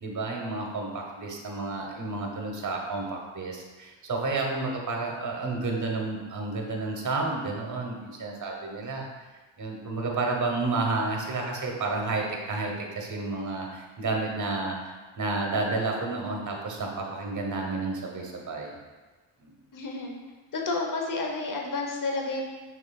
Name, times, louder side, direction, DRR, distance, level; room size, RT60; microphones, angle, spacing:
voice 1, 0.0-9.1 9.6-18.8 19.4-19.5, right 3 dB, 35° right, 0 dB, 0.9 m, -31 dB
voice 2, 19.7-20.1 20.5-22.4, left 3 dB, 40° left, 0 dB, 0.8 m, -30 dB
5.9 x 2.5 x 2.3 m, 1.3 s
cardioid pair, 70°, 49 cm